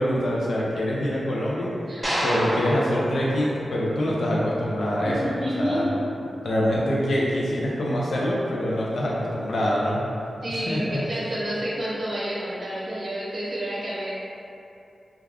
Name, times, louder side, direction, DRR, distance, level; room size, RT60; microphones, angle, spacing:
voice 1, 0.0-1.7 2.2-5.9 6.4-10.0 10.5-11.0, equal, 80° left, -5 dB, 0.4 m, -25 dB
sound 1, 2.0-4.4, equal, 10° right, 0.7 m, -29 dB
voice 2, 5.0-6.0 10.4-14.1, equal, 60° right, -8 dB, 0.8 m, -29 dB
2.3 x 2.3 x 3.3 m, 2.7 s
wide cardioid pair, 125°, 0 cm